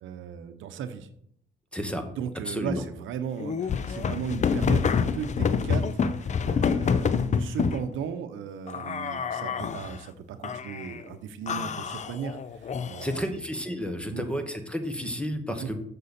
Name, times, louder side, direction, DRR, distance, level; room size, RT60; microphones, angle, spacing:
voice 1, 0.0-1.1 2.1-13.4 14.1-14.2 15.6-15.7, right 7 dB, 80° right, 9 dB, 0.8 m, -36 dB
voice 2, 1.7-2.1 2.4-2.8 13.0-15.8, equal, 5° left, 7 dB, 1.1 m, -31 dB
sound 1, 3.4-7.8 8.7-10.0 10.4-11.0 11.5-13.3, left 6 dB, 35° left, 0.5 m, -27 dB
6.7 x 6.5 x 4.2 m, 0.69 s
cardioid pair, 90°, 20 cm